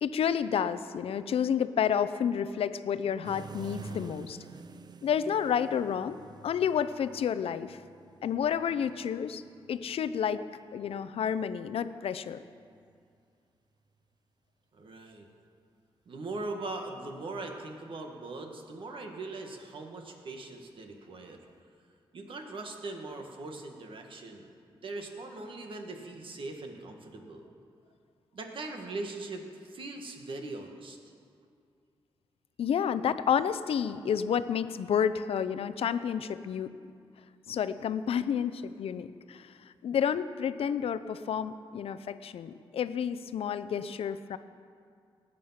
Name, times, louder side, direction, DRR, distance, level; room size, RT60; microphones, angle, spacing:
voice 1, 0.0-4.4 5.0-7.8 8.2-10.4 10.7-12.4 32.6-36.7 37.5-39.5 39.8-44.4, left 8 dB, 75° left, 13 dB, 0.6 m, -30 dB
sound 1, 3.2-11.0 12.6-13.0 21.5-21.6, right 5 dB, 45° right, 0.6 m, -49 dB
voice 2, 14.7-15.3 16.0-21.4 22.1-27.5 28.3-31.0, right 2 dB, 60° right, 3 dB, 1.7 m, -40 dB
19.0 x 8.5 x 5.8 m, 2.3 s
wide cardioid pair, 110°, 10 cm